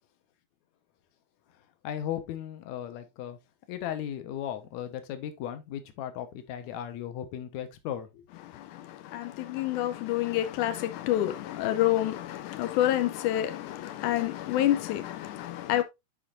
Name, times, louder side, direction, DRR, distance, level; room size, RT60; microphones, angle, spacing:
voice 1, 1.5-3.4 3.7-8.2, left 10 dB, 70° left, 2.3 m, -36 dB
voice 2, 8.5-15.8, left 13 dB, 85° left, 2.2 m, -28 dB
11.0 x 5.2 x 2.5 m
omnidirectional pair, 3.5 m